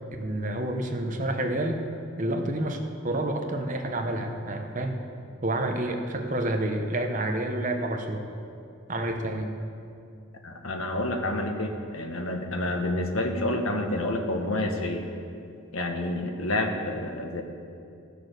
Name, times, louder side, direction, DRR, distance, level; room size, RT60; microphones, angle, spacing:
voice 1, 0.2-1.8 2.2-5.0 5.4-8.3 8.9-9.5, right 1 dB, 35° right, 4 dB, 0.9 m, -29 dB
voice 2, 10.4-15.0 15.7-17.4, left 1 dB, 75° left, 4 dB, 1.2 m, -29 dB
14.5 x 6.9 x 6.6 m, 2.5 s
head